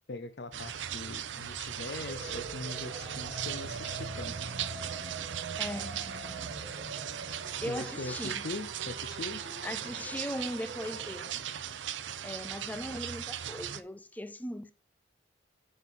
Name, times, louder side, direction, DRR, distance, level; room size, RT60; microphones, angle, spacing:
voice 1, 0.1-4.4 7.6-9.4, left 3 dB, 60° left, 0.6 m, -41 dB
sound 1, 0.5-13.8, right 9 dB, 80° right, 0.6 m, -38 dB
sound 2, 2.1-11.3, right 3 dB, 45° right, 1.4 m, -45 dB
voice 2, 5.6-6.0 7.6-8.4 9.6-11.3 12.2-14.7, equal, 10° left, 0.5 m, -38 dB
9.2 x 3.9 x 5.7 m
head